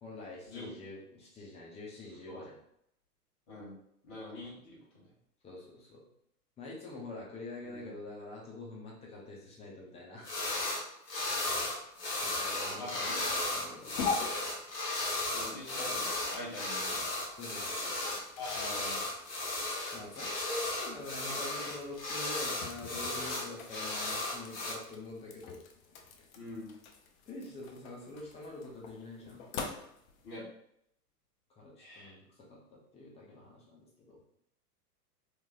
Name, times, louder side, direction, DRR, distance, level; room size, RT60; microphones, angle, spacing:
voice 1, 0.0-2.6 5.4-6.1 6.6-10.3 11.1-11.2 12.2-13.9 17.4-18.0 19.9-25.6 27.3-29.4 29.8-29.9 31.6-34.2, left 2 dB, 15° left, -3 dB, 0.5 m, -45 dB
voice 2, 4.0-5.1 7.6-7.9 12.8-13.1 15.3-17.0 18.4-19.0 26.3-26.7 30.2-30.4 31.8-32.1, left 2 dB, 45° left, -6 dB, 1.4 m, -44 dB
sound 1, 10.2-10.8 11.1-24.7, left 2 dB, 80° left, 1.0 m, -35 dB
sound 2, 12.3-30.4, left 5 dB, 60° left, 0.6 m, -45 dB
2.9 x 2.6 x 2.3 m, 0.73 s
figure-of-eight pair, 95°, 48 cm